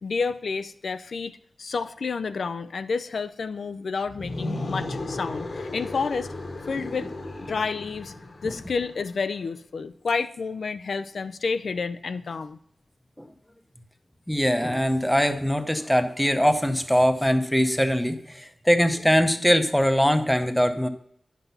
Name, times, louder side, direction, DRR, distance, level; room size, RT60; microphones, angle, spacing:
voice 1, 0.0-6.3 6.7-7.1 7.5-8.1 8.4-12.6, left 4 dB, 75° left, 11 dB, 0.5 m, -30 dB
sound 1, 4.0-9.1, left 2 dB, 50° left, 1.1 m, -35 dB
voice 2, 14.3-20.9, equal, 5° left, 8 dB, 0.8 m, -22 dB
10.5 x 6.0 x 5.4 m, 0.70 s
wide cardioid pair, 130°, 0 cm